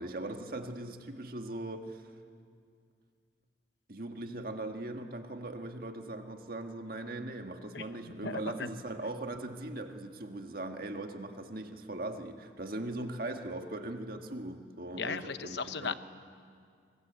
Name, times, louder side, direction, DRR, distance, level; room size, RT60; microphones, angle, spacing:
voice 1, 0.0-2.1 3.9-15.9, right 2 dB, 50° right, 5 dB, 1.7 m, -40 dB
voice 2, 8.2-8.7 15.0-15.9, left 5 dB, 65° left, 12 dB, 0.9 m, -36 dB
25.0 x 21.0 x 8.3 m, 2.2 s
head